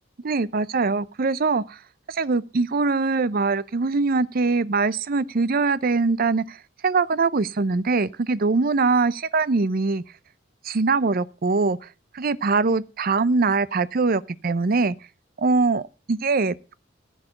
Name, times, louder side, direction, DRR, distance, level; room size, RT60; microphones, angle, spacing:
voice 1, 0.2-1.8 2.1-6.6 6.8-10.0 10.6-11.8 12.1-14.9 15.4-16.5, right 4 dB, 50° right, 0.6 m, -22 dB
14.5 x 4.8 x 8.7 m
head